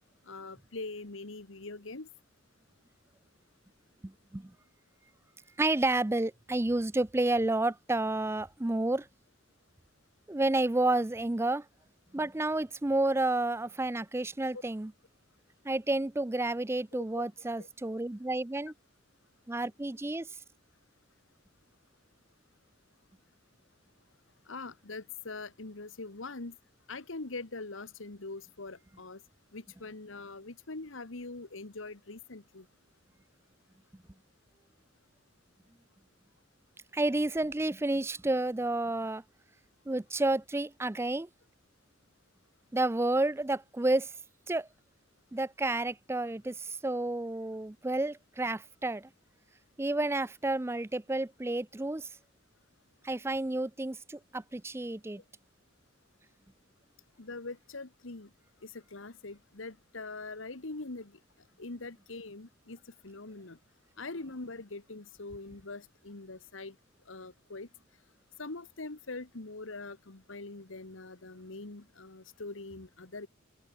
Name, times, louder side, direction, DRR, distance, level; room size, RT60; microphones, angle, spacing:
voice 1, 0.2-2.1 14.5-14.6 16.9-17.2 17.6-17.7 24.5-26.5 26.9-29.2 29.5-32.6 57.2-58.3 58.6-61.1 61.6-63.6 64.0-66.7 67.1-67.7 68.4-73.3, left 3 dB, 80° left, 1.6 m, -43 dB
voice 2, 4.0-4.5 5.6-9.1 10.3-11.6 12.1-14.9 15.6-18.7 19.5-20.3 36.9-39.2 39.9-41.3 42.7-44.1 44.5-44.7 45.3-49.1 49.8-52.1 53.0-55.2, right 2 dB, 15° right, 0.4 m, -30 dB
head